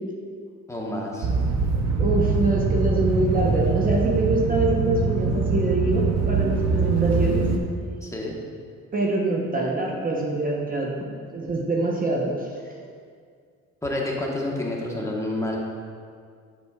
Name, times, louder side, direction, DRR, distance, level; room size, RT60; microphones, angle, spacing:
voice 1, 0.7-1.3 8.0-8.4 13.8-15.6, left 1 dB, 10° left, -2 dB, 1.1 m, -29 dB
sound 1, 1.2-7.6, right 4 dB, 60° right, 0.7 m, -23 dB
voice 2, 2.0-7.4 8.9-10.9 11.3-12.5, right 2 dB, 30° right, -2 dB, 0.8 m, -24 dB
8.3 x 6.1 x 2.3 m, 2.1 s
cardioid pair, 90°, 30 cm